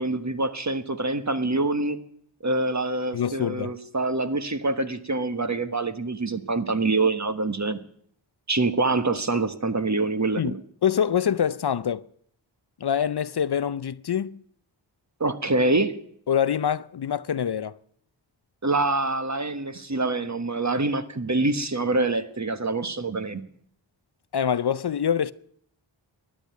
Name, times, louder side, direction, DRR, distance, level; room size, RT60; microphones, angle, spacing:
voice 1, 0.0-2.0 2.4-7.8 8.5-10.6 15.2-16.0 18.6-23.4, right 2 dB, 35° right, 1.3 m, -25 dB
voice 2, 3.1-3.8 10.4-10.6 10.8-12.1 12.8-14.4 16.3-17.7 24.3-25.3, left 8 dB, 55° left, 0.6 m, -25 dB
13.5 x 10.5 x 9.4 m
cardioid pair, 45°, 47 cm